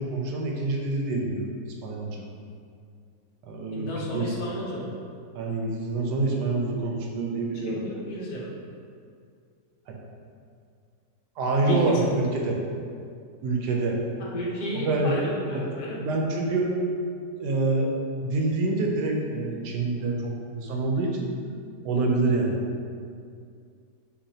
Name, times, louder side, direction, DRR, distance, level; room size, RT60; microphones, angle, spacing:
voice 1, 0.0-1.5 1.8-2.2 3.4-4.3 5.3-7.9 9.9-10.0 11.4-12.6 13.4-14.0 14.8-15.1 16.0-16.9 17.4-17.9 18.2-21.3 21.8-22.6, right 2 dB, 75° right, 0 dB, 1.2 m, -26 dB
voice 2, 3.7-4.9 7.5-8.5 11.7-12.0 14.2-16.1, equal, 65° left, -5 dB, 1.4 m, -33 dB
7.0 x 2.6 x 2.8 m, 2.3 s
omnidirectional pair, 1.9 m